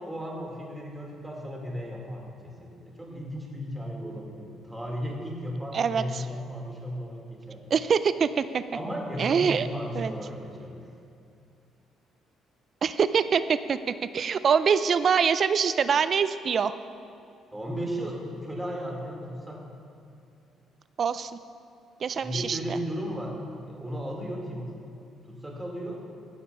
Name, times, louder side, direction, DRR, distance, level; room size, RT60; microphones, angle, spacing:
voice 1, 0.1-7.6 8.7-10.8 17.5-19.6 22.2-23.4 23.7-24.7 25.3-26.0, equal, 5° right, -2 dB, 2.1 m, -35 dB
voice 2, 5.7-6.2 7.7-8.6 9.2-9.7 9.9-10.1 12.8-16.7 21.0-21.3 22.0-22.6, right 6 dB, 40° right, 13 dB, 0.3 m, -24 dB
16.0 x 6.6 x 5.5 m, 2.5 s
cardioid pair, 135°, 0 cm